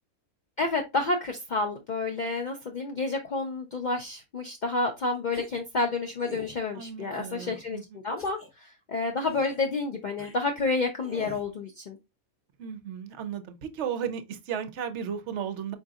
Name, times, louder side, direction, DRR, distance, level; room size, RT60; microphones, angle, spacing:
voice 1, 0.6-7.8 8.0-12.0, left 3 dB, 65° left, 0.4 m, -29 dB
sound 1, 5.3-5.7 6.2-6.6 7.1-7.6 8.2-8.5 9.2-9.6 10.2-10.4 11.0-11.5, right 1 dB, 15° left, 0.6 m, -45 dB
voice 2, 6.7-8.0 12.6-15.7, right 8 dB, 65° right, 0.8 m, -35 dB
4.5 x 3.8 x 2.4 m
omnidirectional pair, 1.5 m